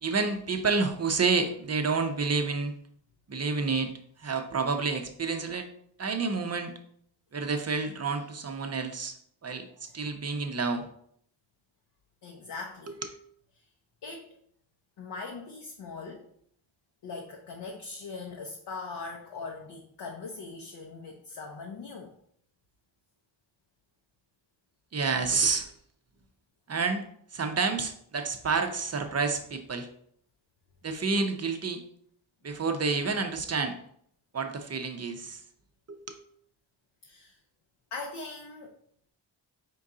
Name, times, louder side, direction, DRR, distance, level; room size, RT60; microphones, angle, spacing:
voice 1, 0.0-2.7 3.3-3.9 4.2-5.7 6.0-6.7 7.3-9.2 9.4-10.8 12.9-13.1 24.9-25.7 26.7-27.0 27.3-29.9 30.8-31.8 32.4-33.8 34.3-35.4 35.9-36.2, right 4 dB, 30° right, 6 dB, 0.6 m, -29 dB
voice 2, 12.2-13.0 14.0-14.3 15.0-16.3 17.0-22.1 37.0-37.4 37.9-38.7, left 4 dB, 55° left, 1 dB, 0.8 m, -40 dB
4.5 x 2.6 x 3.6 m, 0.66 s
cardioid pair, 50°, 48 cm